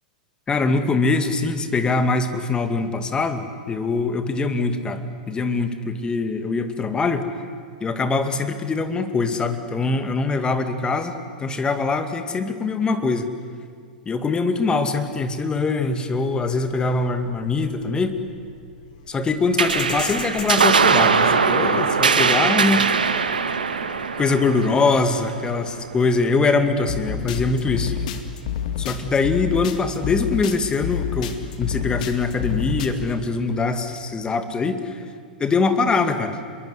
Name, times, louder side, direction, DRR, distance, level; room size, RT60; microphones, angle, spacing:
voice 1, 0.5-7.3 7.8-13.3 14.1-18.2 19.1-22.9 24.2-28.0 28.8-31.3 31.6-35.0 35.4-36.4, left 3 dB, 20° left, 8 dB, 2.2 m, -23 dB
sound 1, 16.3-32.9, left 9 dB, 65° left, 2.4 m, -30 dB
sound 2, 19.6-26.4, right 5 dB, 85° right, 1.7 m, -21 dB
27.0 x 22.0 x 8.2 m, 2.1 s
hypercardioid pair, 105°, 5 cm